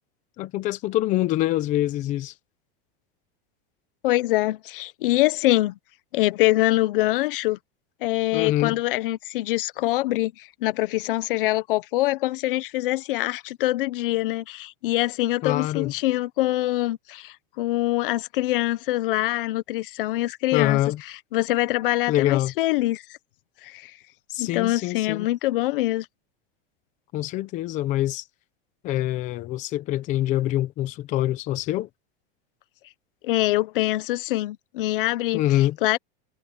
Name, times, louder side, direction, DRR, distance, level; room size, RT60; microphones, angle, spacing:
voice 1, 0.4-2.3 8.3-8.8 15.4-15.9 20.5-21.0 22.1-22.5 24.3-25.3 27.1-28.2 28.8-31.9 35.3-35.8, left 14 dB, 25° left, 0.8 m, -25 dB
voice 2, 4.0-5.8 6.1-7.6 8.0-20.8 21.3-23.0 23.6-23.9 24.4-26.1 33.2-35.4 35.8-36.0, left 17 dB, 65° left, 0.9 m, -24 dB
supercardioid pair, 175°, 30 cm